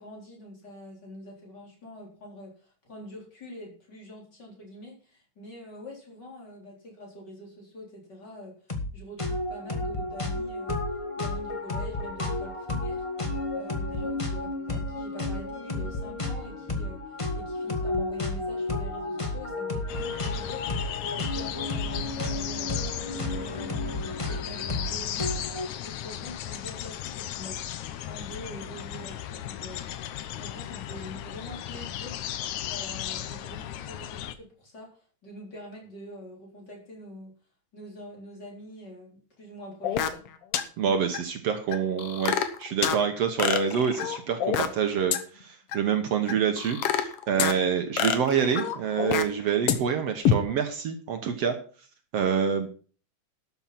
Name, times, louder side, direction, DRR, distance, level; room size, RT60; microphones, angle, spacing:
voice 1, 0.0-8.6 8.9-10.8 11.2-13.0 13.5-20.7 21.1-30.1 30.4-32.2 32.7-37.3 37.7-40.2, equal, 35° left, -1 dB, 4.3 m, -45 dB
sound 1, 8.7-8.9 9.2-25.7, left 2 dB, 20° left, 0.9 m, -32 dB
sound 2, 19.9-34.4, left 11 dB, 90° left, 2.3 m, -36 dB
sound 3, 39.8-40.3 40.5-40.6 41.1-41.2 41.7-43.0 43.4-44.8 45.1-45.2 45.7-45.8 46.3-47.5 48.0-49.4 49.7-49.8 50.2-50.3, left 8 dB, 60° left, 1.9 m, -26 dB
voice 2, 40.8-51.6 52.1-52.7, right 7 dB, 65° right, 6 dB, 2.1 m, -27 dB
12.5 x 7.4 x 5.8 m, 0.40 s
omnidirectional pair, 3.3 m